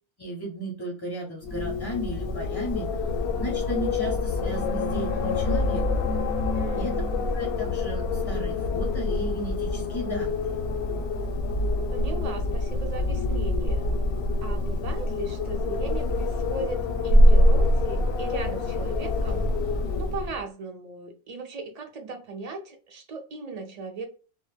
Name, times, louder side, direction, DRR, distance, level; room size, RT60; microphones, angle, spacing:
voice 1, 0.2-2.9 3.4-6.1 6.7-6.9 7.3-10.6, equal, 35° left, 0.4 m, -34 dB
Wind, 1.4-20.4, left 1 dB, 80° left, 0.8 m, -25 dB
voice 2, 6.5-7.0 11.9-13.9 14.4-19.5 19.9-24.1, right 3 dB, 50° right, 0.5 m, -37 dB
2.1 x 2.0 x 3.2 m
omnidirectional pair, 1.1 m